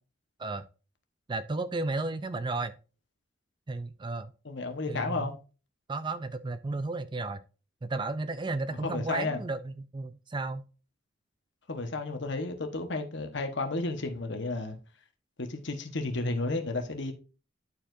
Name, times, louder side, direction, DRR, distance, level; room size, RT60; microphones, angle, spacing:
voice 1, 1.3-2.8 3.7-4.3 4.9-5.4 5.9-7.4 7.8-10.6, right 3 dB, 25° right, 0.4 m, -33 dB
voice 2, 4.4-5.3 8.8-9.4 11.7-14.8 15.4-17.1, left 2 dB, 60° left, 1.2 m, -32 dB
11.5 x 4.7 x 2.6 m
head